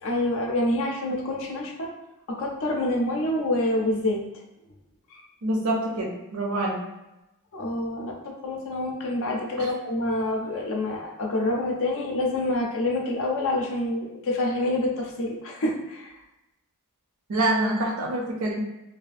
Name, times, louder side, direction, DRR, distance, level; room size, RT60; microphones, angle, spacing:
voice 1, 0.0-1.9 2.3-4.3 5.1-5.2 7.5-16.2, left 1 dB, 65° left, 0 dB, 0.5 m, -27 dB
voice 2, 5.4-6.8 9.6-9.7 17.3-18.6, right 1 dB, 70° right, 1 dB, 0.5 m, -26 dB
2.6 x 2.4 x 2.4 m, 0.94 s
head